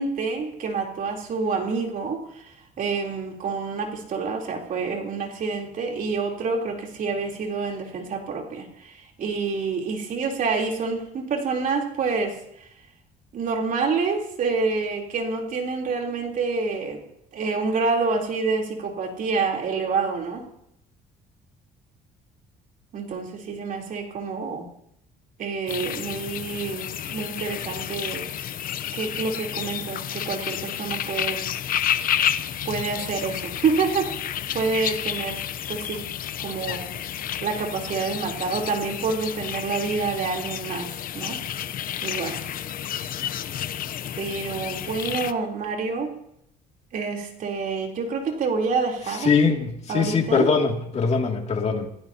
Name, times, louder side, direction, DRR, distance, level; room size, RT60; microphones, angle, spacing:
voice 1, 0.0-2.5 2.8-12.4 13.3-17.0 17.3-20.4 22.9-24.7 25.4-28.2 28.9-31.5 32.6-36.1 36.4-36.9 37.4-41.4 42.0-42.5 44.1-46.1 46.9-49.3 49.9-50.5, right 4 dB, 55° right, 1 dB, 3.7 m, -27 dB
sound 1, 25.7-45.3, left 10 dB, 55° left, 0.8 m, -31 dB
voice 2, 49.1-51.9, left 5 dB, 40° left, 2 dB, 2.6 m, -22 dB
28.5 x 16.0 x 2.9 m, 0.76 s
cardioid pair, 110°, 17 cm